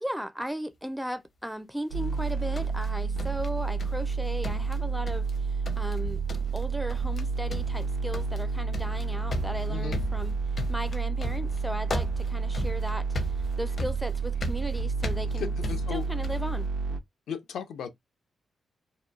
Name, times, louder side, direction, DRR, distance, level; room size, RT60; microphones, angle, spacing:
voice 1, 0.0-6.2 6.5-10.4 10.7-13.1 13.6-15.5 15.9-16.7, equal, ahead, 0.4 m, -36 dB
sound 1, 1.9-17.0, right 4 dB, 90° right, 0.6 m, -30 dB
sound 2, 2.2-4.1 4.4-5.4 5.7-6.0 6.3-6.6 6.9-7.2 7.5-16.5, left 1 dB, 50° left, 0.6 m, -37 dB
voice 2, 15.4-16.1 17.3-17.9, left 7 dB, 85° left, 0.6 m, -35 dB
2.9 x 2.2 x 2.3 m
cardioid pair, 95°, 0 cm